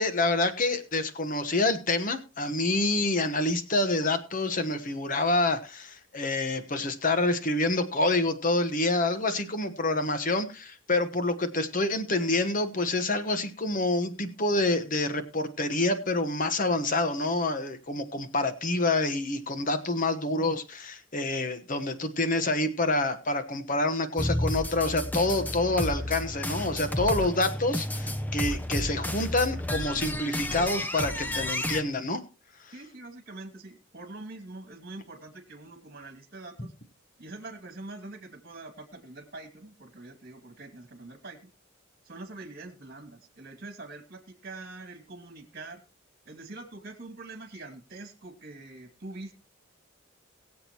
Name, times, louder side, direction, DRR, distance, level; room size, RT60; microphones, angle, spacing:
voice 1, 0.0-32.2, left 2 dB, 40° left, 10 dB, 1.3 m, -27 dB
sound 1, 24.2-31.8, left 1 dB, 10° left, 0.6 m, -31 dB
voice 2, 32.7-36.7 37.2-41.5 42.0-45.8 46.2-49.3, right 2 dB, 45° right, 6 dB, 2.5 m, -44 dB
22.0 x 7.7 x 3.0 m, 0.32 s
head